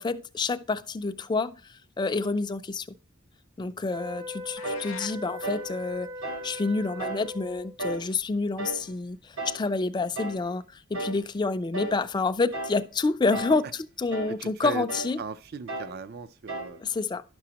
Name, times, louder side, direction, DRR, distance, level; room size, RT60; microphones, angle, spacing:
voice 1, 0.0-2.9 3.6-6.1 6.4-13.6 14.0-15.2 16.8-17.2, left 3 dB, 20° left, 0.3 m, -28 dB
sound 1, 3.9-7.8, left 1 dB, 70° right, 0.9 m, -40 dB
sound 2, 4.6-5.2, left 9 dB, 75° left, 0.5 m, -42 dB
sound 3, 4.6-4.9 5.4-5.7 6.2-6.5 7.0-7.3 7.8-8.1 8.6-8.9 9.4-9.7 10.2-10.4 10.9-11.3 11.7-12.0 12.5-12.8 13.3-13.7 14.1-14.4 14.9-15.2 15.7-16.0 16.5-16.8, right 2 dB, 85° right, 1.2 m, -34 dB
voice 2, 14.4-14.9 15.2-16.8, right 5 dB, 50° right, 0.4 m, -37 dB
11.0 x 6.1 x 2.9 m
head